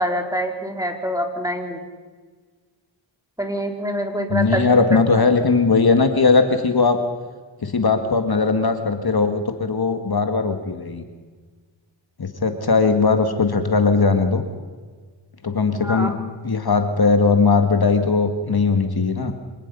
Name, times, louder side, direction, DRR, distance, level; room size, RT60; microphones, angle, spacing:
voice 1, 0.0-1.8 3.4-4.7 15.8-16.2, equal, 5° right, 4 dB, 3.3 m, -25 dB
voice 2, 4.3-7.0 7.6-11.0 12.2-14.4 15.4-16.1 16.4-19.3, left 4 dB, 50° left, 7 dB, 1.9 m, -19 dB
25.5 x 19.0 x 5.5 m, 1.4 s
wide cardioid pair, 75°, 47 cm